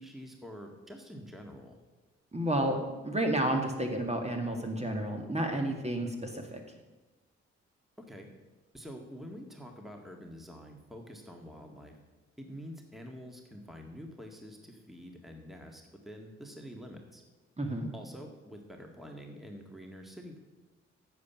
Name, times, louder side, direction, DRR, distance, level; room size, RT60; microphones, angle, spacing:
voice 1, 0.0-1.8 8.0-8.3 8.7-12.0 12.4-17.2 17.9-20.4, equal, ahead, 2 dB, 1.7 m, -47 dB
voice 2, 2.3-2.8 3.0-6.6 17.6-17.9, right 1 dB, 20° right, 3 dB, 1.8 m, -31 dB
9.4 x 7.2 x 6.0 m, 1.2 s
hypercardioid pair, 45°, 30 cm